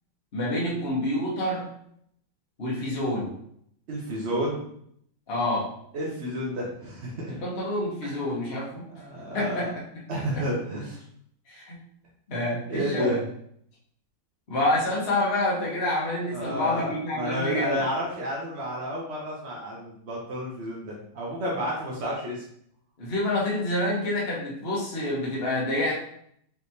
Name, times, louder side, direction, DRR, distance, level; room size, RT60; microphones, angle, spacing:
voice 1, 0.3-1.7 2.6-3.3 5.3-5.7 7.3-8.9 9.3-9.7 10.1-10.4 11.5-11.8 12.3-13.2 14.5-17.8 23.0-25.9, left 1 dB, 40° left, -5 dB, 1.0 m, -27 dB
voice 2, 3.9-4.7 5.9-7.4 8.0-8.2 8.9-9.7 10.1-11.0 12.7-13.2 16.3-22.4, equal, 60° right, -4 dB, 0.6 m, -31 dB
4.8 x 3.3 x 2.7 m, 0.69 s
omnidirectional pair, 2.3 m